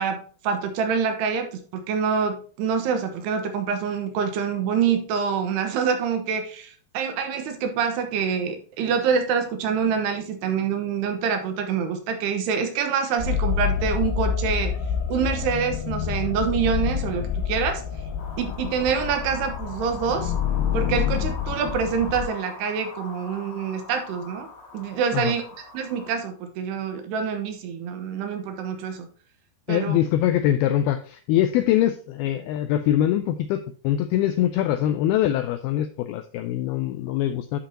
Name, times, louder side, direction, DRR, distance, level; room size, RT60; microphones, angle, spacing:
voice 1, 0.0-14.7 15.1-17.8 18.4-20.3 20.7-24.5 24.7-25.4 25.7-29.1 29.7-30.0, right 6 dB, 75° right, 6 dB, 3.1 m, -26 dB
sound 1, 13.2-22.2, left 8 dB, 60° left, 3.0 m, -27 dB
sound 2, 18.2-26.1, left 4 dB, 45° left, 3.5 m, -42 dB
voice 2, 29.7-37.6, left 12 dB, 90° left, 9 dB, 2.2 m, -23 dB
11.5 x 5.2 x 2.8 m, 0.42 s
omnidirectional pair, 5.0 m